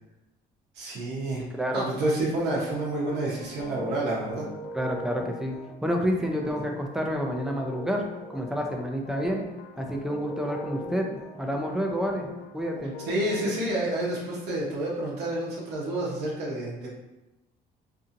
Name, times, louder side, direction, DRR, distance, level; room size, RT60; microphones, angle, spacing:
voice 1, 0.7-1.4 1.7-4.5 13.1-16.9, right 1 dB, 85° right, -5 dB, 0.7 m, -29 dB
voice 2, 1.4-1.9 4.7-8.0 8.3-9.4 9.8-12.9, equal, 5° right, 1 dB, 0.4 m, -29 dB
sound 1, 2.3-13.6, left 2 dB, 90° left, 0.4 m, -41 dB
2.7 x 2.6 x 2.5 m, 0.97 s
cardioid pair, 110°, 17 cm